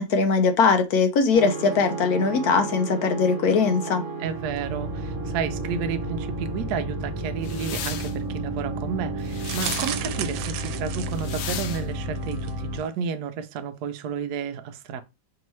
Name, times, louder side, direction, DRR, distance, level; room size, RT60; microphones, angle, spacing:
voice 1, 0.0-4.0, left 5 dB, 70° left, 1.0 m, -21 dB
sound 1, 1.3-12.8, right 2 dB, 50° right, 1.2 m, -32 dB
voice 2, 4.2-15.0, right 7 dB, 70° right, 1.0 m, -31 dB
sound 2, 7.4-8.1 9.2-10.0 11.1-11.8, left 9 dB, 90° left, 1.4 m, -35 dB
sound 3, 9.4-11.7 12.2-12.5 12.8-12.9, right 11 dB, 85° right, 1.3 m, -34 dB
4.5 x 2.9 x 3.1 m
omnidirectional pair, 2.1 m